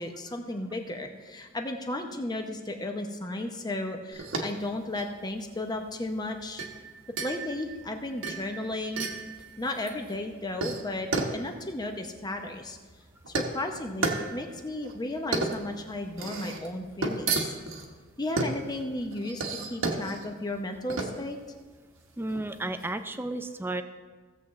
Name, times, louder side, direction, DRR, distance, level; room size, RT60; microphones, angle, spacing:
voice 1, 0.0-6.6 7.2-9.1 9.6-12.8 13.3-17.5 18.2-21.4, left 1 dB, 20° left, 4 dB, 0.7 m, -34 dB
sound 1, 4.1-22.9, right 3 dB, 70° right, 1.2 m, -34 dB
voice 2, 22.2-23.8, right 2 dB, 10° right, 9 dB, 0.4 m, -33 dB
16.5 x 7.4 x 3.1 m, 1.4 s
head